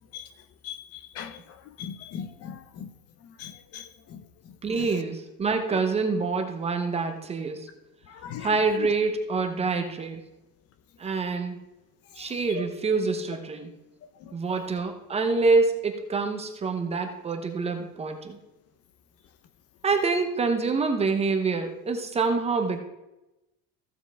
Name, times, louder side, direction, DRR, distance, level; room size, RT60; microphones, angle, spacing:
voice 1, 0.6-1.3 1.8-2.9 3.4-3.8 4.1-4.2 4.8-4.9 8.2-8.5, left 8 dB, 45° left, 10 dB, 0.7 m, -38 dB
voice 2, 4.6-7.7 8.4-10.2 11.0-11.6 12.2-13.7 14.3-18.4 19.8-22.8, right 4 dB, 20° right, 5 dB, 0.7 m, -26 dB
15.0 x 7.1 x 3.4 m, 0.96 s
cardioid pair, 160°, 35 cm